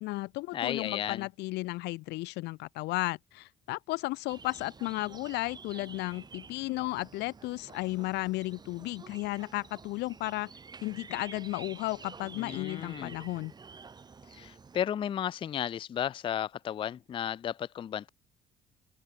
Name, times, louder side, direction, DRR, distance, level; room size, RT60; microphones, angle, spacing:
voice 1, 0.0-10.5 10.8-13.5, left 20 dB, 85° left, 0.7 m, -34 dB
voice 2, 0.5-1.3 12.4-13.2 14.3-18.1, left 9 dB, 30° left, 0.3 m, -34 dB
sound 1, 4.3-14.8, right 5 dB, 25° right, 1.0 m, -50 dB
cardioid pair, 110°, 17 cm